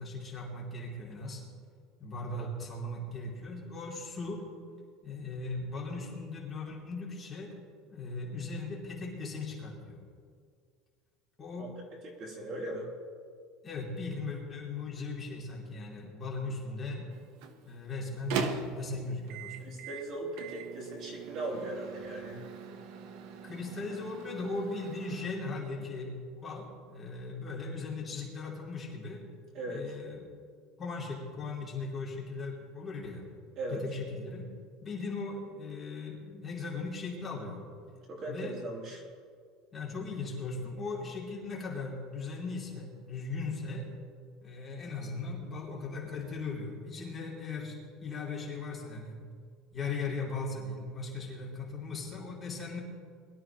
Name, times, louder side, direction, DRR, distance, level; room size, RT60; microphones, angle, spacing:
voice 1, 0.0-1.4 2.0-4.5 5.0-7.5 7.9-10.0 11.4-11.7 13.6-17.1 17.6-19.7 23.4-29.3 29.7-30.3 30.8-33.2 33.7-34.5 34.8-37.6 38.3-38.6 39.7-43.9 44.4-49.2 49.7-52.8, left 3 dB, 20° left, -4 dB, 2.8 m, -38 dB
voice 2, 12.0-12.9 19.6-22.5 29.5-29.9 33.6-33.8 38.1-39.0, right 1 dB, 40° right, -2 dB, 3.2 m, -38 dB
Microwave oven, 17.1-25.3, right 6 dB, 70° right, 1.1 m, -41 dB
22.0 x 12.5 x 3.0 m, 2.1 s
cardioid pair, 160°, 0 cm